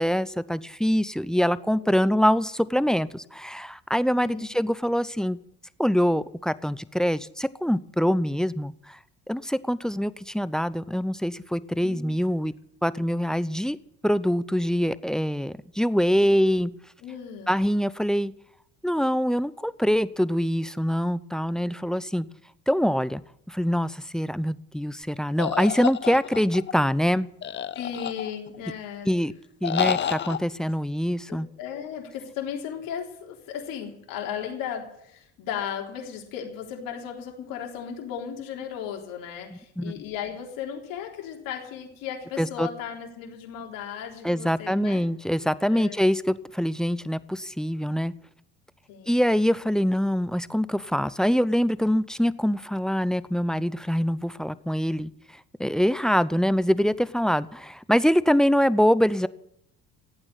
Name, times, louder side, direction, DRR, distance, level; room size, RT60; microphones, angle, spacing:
voice 1, 0.0-5.4 5.8-9.0 9.3-12.5 12.8-13.8 14.0-16.7 17.5-18.3 18.8-22.3 22.7-23.2 23.5-27.3 29.1-29.3 29.6-31.5 39.8-39.9 42.4-42.7 44.2-48.1 49.1-55.1 55.6-59.3, equal, ahead, 19 dB, 0.7 m, -24 dB
voice 2, 4.1-4.5 11.8-12.1 17.0-17.6 27.7-29.1 30.0-30.1 31.3-45.0 45.7-46.0 48.9-49.2, left 8 dB, 70° left, 1 dB, 3.9 m, -36 dB
sound 1, 25.4-26.7 27.4-28.6 29.6-30.4, left 9 dB, 35° left, 0.7 m, -29 dB
15.0 x 8.8 x 9.7 m, 0.73 s
supercardioid pair, 75°, 35 cm